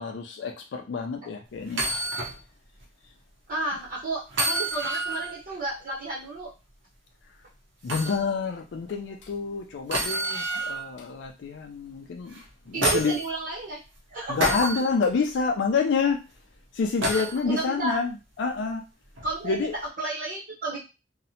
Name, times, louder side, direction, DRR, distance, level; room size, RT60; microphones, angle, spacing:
voice 1, 0.0-1.9 7.8-12.4 12.7-13.2 14.3-16.2 16.7-18.8 19.4-19.7, left 5 dB, 70° left, 3 dB, 0.4 m, -28 dB
sound 1, 1.7-2.3 2.8-2.9 4.3-5.3 7.9-8.2 9.9-10.8 12.3-13.2 14.4-14.8 17.0-17.4 19.2-19.3, right 1 dB, 80° right, 0.7 m, -28 dB
voice 2, 3.5-6.5 12.7-13.8 14.1-14.4 17.1-18.0 19.2-19.6 20.0-20.8, right 2 dB, 50° right, -4 dB, 0.8 m, -32 dB
2.7 x 2.0 x 2.7 m, 0.29 s
head